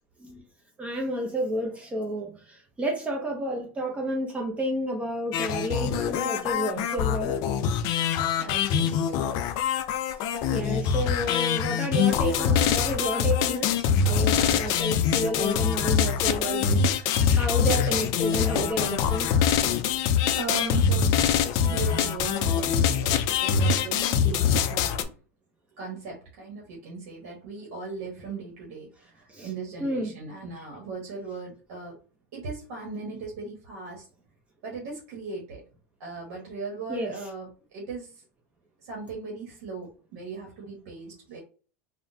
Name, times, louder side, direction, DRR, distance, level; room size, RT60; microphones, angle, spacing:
voice 1, 0.8-7.4 10.5-13.7 14.0-19.3 29.3-29.5 29.8-30.1 36.9-37.1, right 1 dB, 15° right, 0.6 m, -30 dB
sound 1, 5.3-25.0, left 7 dB, 55° left, 0.4 m, -24 dB
voice 2, 8.4-8.9 9.2-9.4 20.3-25.1 25.8-28.9 29.1-32.0 32.3-34.1 34.6-35.6 36.0-38.2 38.8-41.4, right 4 dB, 70° right, 1.1 m, -38 dB
3.5 x 2.1 x 2.6 m
supercardioid pair, 130°, 8 cm